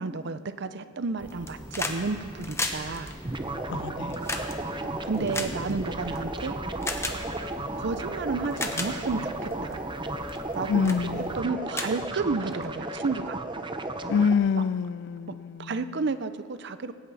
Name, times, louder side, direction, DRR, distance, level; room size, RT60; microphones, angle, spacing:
voice 1, 0.0-3.1 4.8-6.6 7.7-9.8 10.6-13.4 15.6-16.9, right 4 dB, 60° right, 0.6 m, -31 dB
sound 1, 1.2-11.4, equal, 10° right, 1.9 m, -43 dB
sound 2, 1.3-2.0 2.3-6.2 6.8-7.2 8.0-8.1 8.5-8.9 9.5-9.7 10.3-10.5 10.8-11.0 11.4-11.5 11.7-12.7 13.8-13.9, left 3 dB, 15° left, 1.0 m, -33 dB
sound 3, 3.2-14.3, right 2 dB, 25° right, 0.7 m, -34 dB
voice 2, 3.7-4.2 10.7-11.5 14.1-15.9, left 6 dB, 60° left, 0.3 m, -26 dB
18.0 x 16.5 x 4.1 m
head